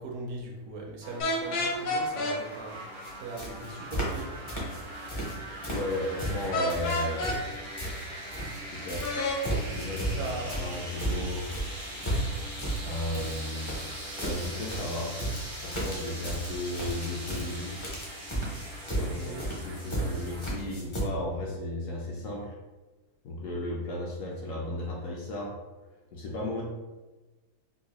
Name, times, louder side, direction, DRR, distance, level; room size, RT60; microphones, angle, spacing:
voice 1, 0.0-4.4 10.1-10.6 19.0-19.5, right 2 dB, 70° right, 0 dB, 0.9 m, -40 dB
sound 1, 1.0-20.5, right 1 dB, 45° right, 0.3 m, -41 dB
sound 2, 1.2-2.4 6.5-7.4 9.0-9.4, left 2 dB, 85° left, 1.2 m, -29 dB
sound 3, 3.0-3.1 3.4-4.2 4.5-5.4 5.6-8.6 8.9-21.0, right 1 dB, 45° left, 0.3 m, -34 dB
voice 2, 5.7-7.3 8.6-9.1 9.7-10.3 10.6-11.5 12.8-13.8 14.2-15.1 15.6-17.8 18.9-22.5 23.2-25.5 26.1-26.6, left 1 dB, 70° left, -3 dB, 0.8 m, -34 dB
3.7 x 2.3 x 2.9 m, 1.2 s
omnidirectional pair, 1.8 m